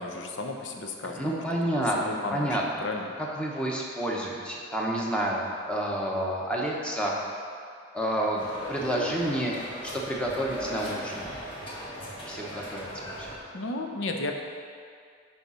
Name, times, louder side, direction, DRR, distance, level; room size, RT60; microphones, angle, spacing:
voice 1, 0.0-1.2 1.7-2.5 2.8-3.1 13.5-14.3, left 2 dB, 70° left, 3 dB, 0.7 m, -33 dB
voice 2, 1.0-2.6 3.2-5.4 5.6-7.1 7.9-9.5 9.9-11.3 12.2-13.3, right 1 dB, 5° left, -3 dB, 1.0 m, -29 dB
sound 1, 8.4-13.4, equal, 25° left, 1.5 m, -38 dB
7.0 x 4.9 x 5.6 m, 2.3 s
head